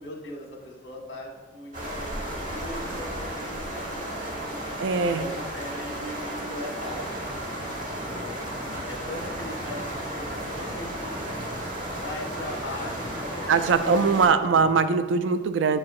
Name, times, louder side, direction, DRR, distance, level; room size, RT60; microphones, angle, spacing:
voice 1, 0.0-4.8 5.1-7.7 8.0-8.4 8.9-11.4 11.8-13.5 13.8-14.3, left 1 dB, 65° left, 0 dB, 1.2 m, -40 dB
sound 1, 1.7-14.3, right 1 dB, 45° right, 1.1 m, -34 dB
voice 2, 4.8-5.2 13.5-15.8, right 5 dB, 85° right, 11 dB, 0.3 m, -21 dB
sound 2, 6.9-14.7, equal, 25° left, 1.1 m, -43 dB
8.5 x 4.7 x 2.4 m, 1.3 s
head